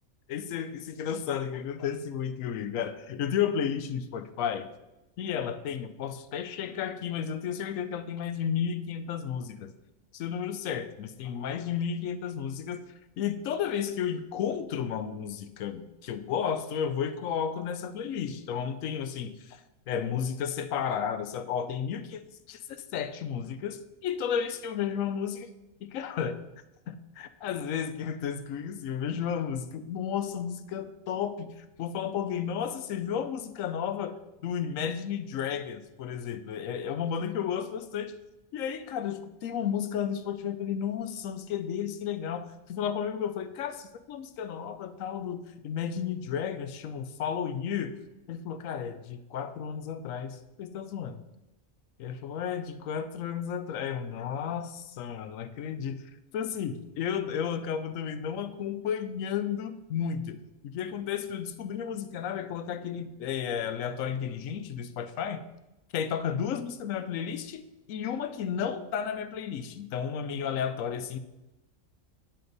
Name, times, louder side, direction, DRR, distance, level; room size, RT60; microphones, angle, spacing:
voice 1, 0.3-4.7 5.2-9.7 10.1-12.8 13.2-19.6 19.9-22.2 22.5-22.6 22.9-25.5 25.8-26.4 26.9-34.2 34.4-38.1 38.5-47.9 48.3-51.2 52.0-56.0 56.3-65.4 65.9-67.6 67.9-71.2, left 8 dB, 90° left, 10 dB, 1.0 m, -33 dB
9.3 x 4.3 x 3.9 m, 0.98 s
omnidirectional pair, 1.4 m